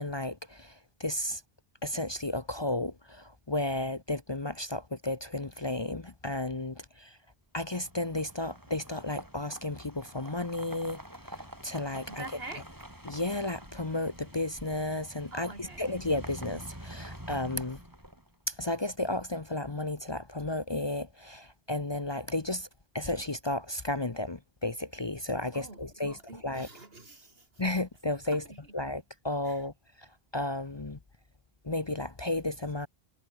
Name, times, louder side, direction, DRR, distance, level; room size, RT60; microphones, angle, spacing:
voice 1, 0.0-1.4 1.8-7.2 7.5-11.0 11.2-12.3 13.0-17.8 18.5-22.7 22.9-26.7 27.6-28.5 28.7-30.1 30.3-31.0 31.6-32.9, left 2 dB, 25° left, 0.9 m, -33 dB
sound 1, 7.7-18.5, right 1 dB, 20° right, 5.5 m, -47 dB
voice 2, 12.1-12.7 15.3-15.8 25.5-27.5 28.3-28.6 29.5-29.6, right 2 dB, 70° right, 3.5 m, -45 dB
omnidirectional pair, 1.0 m